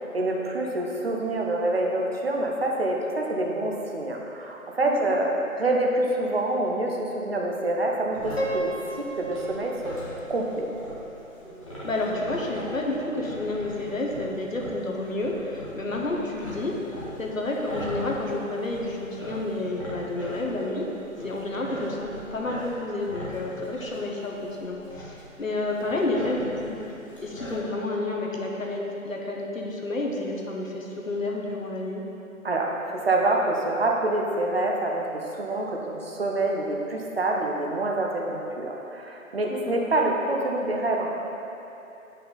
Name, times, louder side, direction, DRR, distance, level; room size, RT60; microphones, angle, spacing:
voice 1, 0.1-5.3 5.6-8.7 9.2-9.9 10.3-10.7 32.4-35.1 35.3-41.2, right 2 dB, 45° right, 0 dB, 0.8 m, -26 dB
voice 2, 4.8-5.2 11.8-16.8 17.2-20.9 21.2-26.9 27.2-32.0 39.5-39.8, left 2 dB, 70° left, -1 dB, 1.1 m, -30 dB
sound 1, 8.1-27.6, equal, 20° left, 1.0 m, -41 dB
Piano, 8.4-11.4, right 1 dB, 45° left, 0.6 m, -34 dB
7.5 x 5.4 x 3.9 m, 2.9 s
figure-of-eight pair, 155°, 42 cm